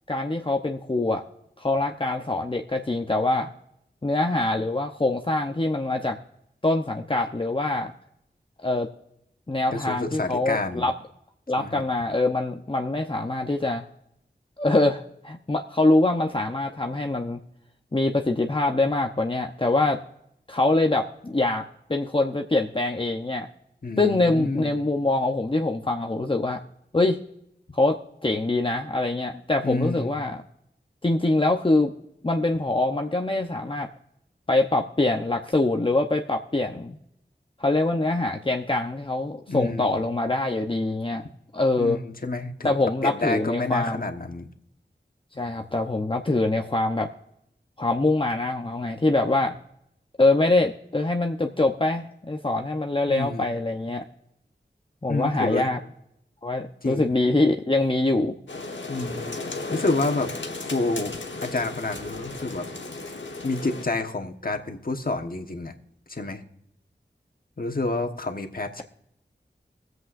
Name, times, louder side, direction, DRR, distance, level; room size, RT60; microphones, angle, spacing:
voice 1, 0.1-1.2 1.6-3.5 4.0-6.2 6.6-7.9 8.6-8.9 9.5-10.9 11.5-13.8 14.6-17.4 17.9-20.0 20.5-21.6 21.9-23.5 24.0-26.6 26.9-27.2 27.7-30.4 31.0-31.9 32.2-33.9 34.5-37.0 37.6-41.2 41.5-42.0 42.6-44.0 45.4-47.1 47.8-49.5 50.2-54.1 55.0-55.8 56.4-58.4, left 2 dB, 30° left, 3 dB, 0.7 m, -24 dB
voice 2, 9.7-10.9 11.6-11.8 23.8-24.7 29.6-30.1 39.5-40.0 41.8-42.7 43.0-44.5 53.1-53.5 55.1-55.7 56.8-57.1 58.9-60.3 60.6-61.1 61.4-62.7 63.4-65.7 66.1-66.4 67.6-68.8, left 2 dB, 50° left, 4 dB, 1.3 m, -29 dB
sound 1, 58.5-63.8, left 3 dB, 85° left, 1.1 m, -35 dB
23.0 x 7.9 x 2.5 m, 0.79 s
wide cardioid pair, 50°, 19 cm